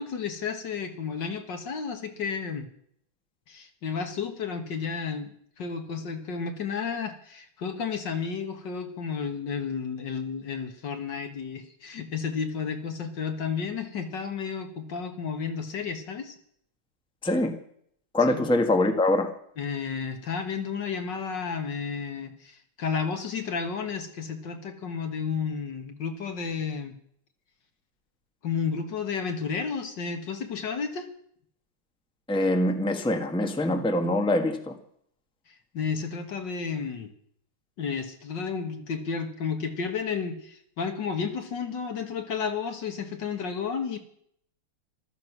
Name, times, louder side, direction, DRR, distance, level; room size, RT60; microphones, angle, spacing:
voice 1, 0.0-2.7 3.5-16.3 18.3-18.5 19.6-27.0 28.4-31.1 35.5-37.1 37.8-44.0, left 6 dB, 60° left, 6 dB, 2.1 m, -32 dB
voice 2, 17.2-17.5 18.1-19.3 32.3-34.7, left 1 dB, 5° left, 5 dB, 1.3 m, -24 dB
14.5 x 13.0 x 6.1 m, 0.66 s
omnidirectional pair, 2.2 m